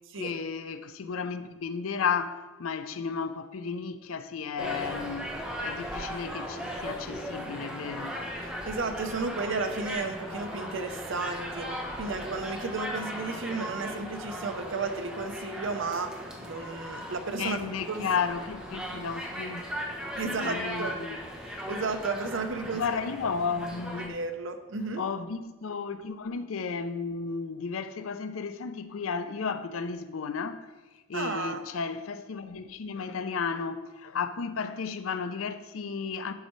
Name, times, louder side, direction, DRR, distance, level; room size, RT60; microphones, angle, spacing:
voice 1, 0.1-5.4 5.6-8.2 17.4-19.6 20.2-21.2 22.7-24.2 25.0-30.7 31.1-36.3, left 5 dB, 85° left, 0.5 m, -33 dB
sound 1, 4.6-24.1, equal, 5° right, 1.0 m, -37 dB
voice 2, 8.7-11.7 11.9-18.1 20.2-21.0 21.4-22.8 24.1-25.0 31.1-31.6, right 4 dB, 65° right, 0.7 m, -33 dB
12.0 x 5.4 x 3.1 m
head